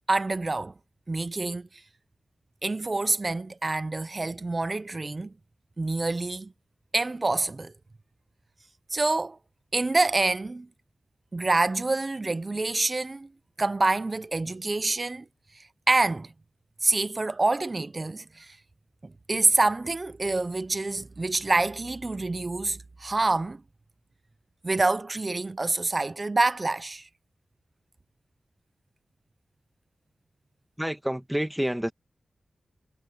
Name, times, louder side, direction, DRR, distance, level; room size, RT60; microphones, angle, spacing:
voice 1, 0.1-0.7 1.1-1.7 2.6-5.3 5.8-6.5 6.9-7.7 8.9-9.4 9.7-10.7 11.3-13.3 13.6-15.2 15.9-16.3 16.8-18.6 19.0-23.6 24.6-27.0, right 2 dB, 35° right, 0.8 m, -26 dB
voice 2, 30.8-31.9, equal, 5° right, 1.8 m, -28 dB
wide cardioid pair, 80°, 0 cm